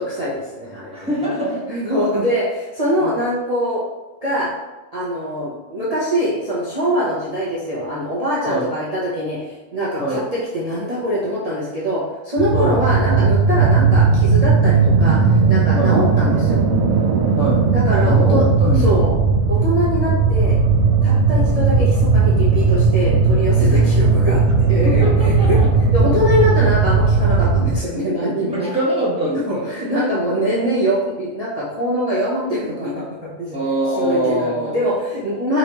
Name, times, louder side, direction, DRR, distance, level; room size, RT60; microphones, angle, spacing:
voice 1, 0.0-1.2 1.7-3.8 4.2-4.5 4.9-16.6 17.7-18.4 18.8-19.2 19.5-20.6 21.0-24.4 24.7-28.7 29.5-33.6 34.0-35.6, equal, 35° right, -7 dB, 0.6 m, -23 dB
voice 2, 0.9-1.7 3.0-3.1 8.4-8.7 10.0-10.3 12.5-12.8 15.7-16.0 17.3-17.6 18.0-19.0 24.6-25.7 28.5-29.7 33.5-34.9, right 1 dB, 5° right, -9 dB, 1.2 m, -23 dB
sound 1, 12.4-27.8, right 4 dB, 75° right, 0.6 m, -16 dB
5.1 x 3.3 x 3.0 m, 1.1 s
omnidirectional pair, 1.7 m